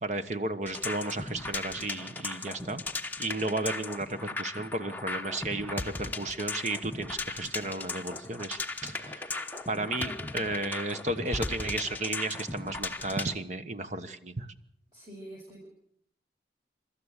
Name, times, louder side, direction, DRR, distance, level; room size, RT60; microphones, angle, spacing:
voice 1, 0.0-2.8 3.2-9.4 9.7-14.5, right 2 dB, 40° right, 10 dB, 1.2 m, -33 dB
sound 1, 0.6-13.3, left 3 dB, 10° left, 0.9 m, -37 dB
voice 2, 10.0-10.4 14.9-15.7, equal, 25° right, -5 dB, 6.4 m, -46 dB
28.5 x 13.5 x 8.3 m, 0.70 s
head